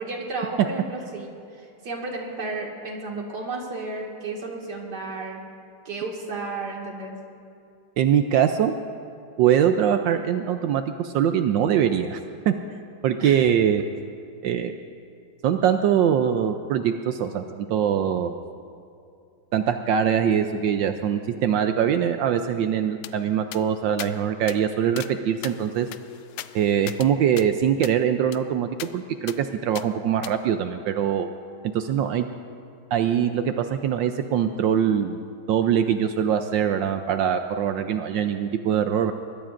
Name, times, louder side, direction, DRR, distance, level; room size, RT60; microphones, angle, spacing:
voice 1, 0.0-5.4 5.9-7.1 13.2-13.4, right 3 dB, 55° right, -1 dB, 2.5 m, -33 dB
voice 2, 8.0-8.7 9.4-12.2 12.5-12.6 13.0-13.8 14.4-14.7 15.4-18.4 19.5-25.9 26.5-31.3 31.7-32.3 32.9-35.2 35.5-39.1, right 9 dB, 75° right, 7 dB, 1.2 m, -23 dB
sound 1, 23.0-23.1 23.5-23.6 24.0-24.1 24.5-24.6 25.0-25.1 25.4-27.1 27.4-27.5 27.8-28.0 28.3-28.4 28.8-28.9 29.3-29.4 29.7-29.9 30.2-30.3, left 13 dB, 75° left, 1.1 m, -38 dB
24.0 x 21.0 x 2.5 m, 2.5 s
omnidirectional pair, 2.2 m